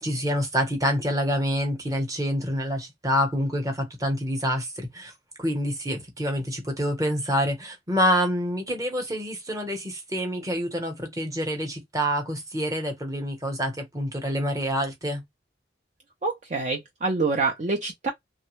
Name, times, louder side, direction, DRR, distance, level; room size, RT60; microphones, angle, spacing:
voice 1, 0.0-5.1 5.4-15.2, equal, 20° right, 0.8 m, -27 dB
voice 2, 16.2-18.1, right 3 dB, 40° right, 0.4 m, -26 dB
3.1 x 2.1 x 3.0 m
head